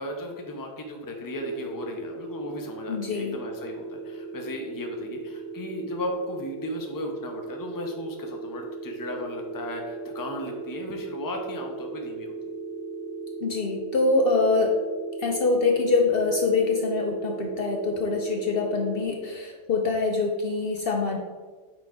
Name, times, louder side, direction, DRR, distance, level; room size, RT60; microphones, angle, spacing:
voice 1, 0.0-12.3, left 1 dB, 20° left, 2 dB, 0.6 m, -35 dB
sound 1, 1.3-19.1, right 4 dB, 40° right, 0.7 m, -37 dB
voice 2, 2.9-3.4 13.4-14.7 15.2-21.2, left 3 dB, 60° left, 2 dB, 0.7 m, -24 dB
5.8 x 4.5 x 3.7 m, 1.4 s
omnidirectional pair, 1.3 m